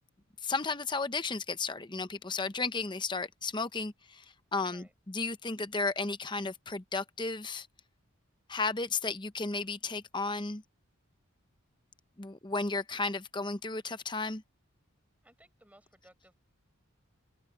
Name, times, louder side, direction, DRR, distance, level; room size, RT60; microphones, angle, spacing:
voice 1, 0.4-4.2 4.5-7.7 8.5-10.6 12.2-14.4, left 3 dB, 20° left, 0.8 m, -34 dB
voice 2, 15.2-16.4, right 1 dB, 5° right, 5.3 m, -60 dB
head